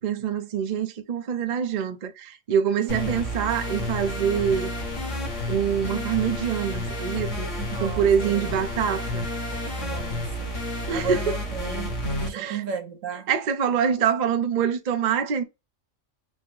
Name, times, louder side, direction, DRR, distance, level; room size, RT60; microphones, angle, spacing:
voice 1, 0.0-4.7 5.5-7.5 7.8-9.3 10.9-11.4 12.3-12.6 13.3-15.4, right 8 dB, 45° right, 0.6 m, -25 dB
voice 2, 2.8-3.2 7.6-8.1 8.3-8.4 9.8-13.3, right 7 dB, 85° right, 1.3 m, -34 dB
sound 1, 2.9-12.3, left 1 dB, 75° left, 2.3 m, -30 dB
6.2 x 2.1 x 3.8 m
omnidirectional pair, 1.3 m